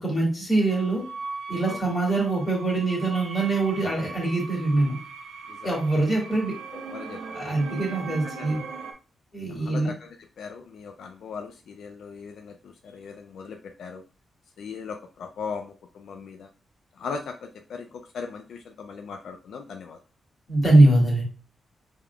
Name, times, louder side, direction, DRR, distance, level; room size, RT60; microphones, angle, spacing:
voice 1, 0.0-1.0 1.5-4.9 5.6-6.5 7.3-8.6 9.3-9.9 20.5-21.2, right 2 dB, 30° left, -2 dB, 1.8 m, -23 dB
sound 1, 0.7-8.9, right 4 dB, 80° right, 0.8 m, -39 dB
voice 2, 6.7-7.4 8.0-8.5 9.5-10.1 10.4-14.0 14.6-16.5 17.0-20.0, left 5 dB, 80° left, 4 dB, 0.4 m, -39 dB
4.8 x 3.7 x 2.2 m, 0.35 s
wide cardioid pair, 145°, 0 cm